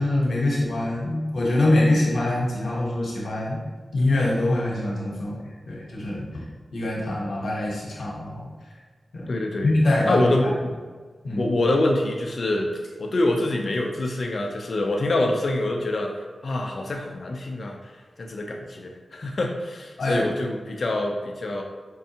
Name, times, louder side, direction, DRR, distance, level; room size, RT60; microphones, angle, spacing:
voice 1, 0.0-3.6 3.9-6.4 6.7-8.5 9.1-9.3 9.6-10.5 11.2-11.5 20.0-20.3, left 1 dB, 80° left, -4 dB, 1.0 m, -24 dB
voice 2, 9.3-9.8 10.0-10.6 11.3-12.7 13.0-16.1 16.4-17.8 18.2-21.6, left 2 dB, 65° left, 2 dB, 0.5 m, -25 dB
5.2 x 2.3 x 2.8 m, 1.5 s
cardioid pair, 60°, 0 cm